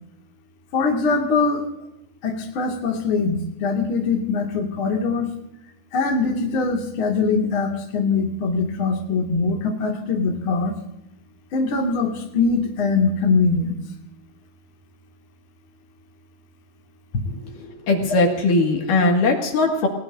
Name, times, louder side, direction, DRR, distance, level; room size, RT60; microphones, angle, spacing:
voice 1, 0.7-1.7 2.2-5.3 5.9-10.8 11.5-13.8, left 4 dB, 40° left, 0 dB, 2.4 m, -22 dB
voice 2, 17.3-19.9, left 2 dB, 60° left, 1 dB, 3.4 m, -20 dB
28.5 x 19.0 x 2.6 m, 0.84 s
omnidirectional pair, 4.6 m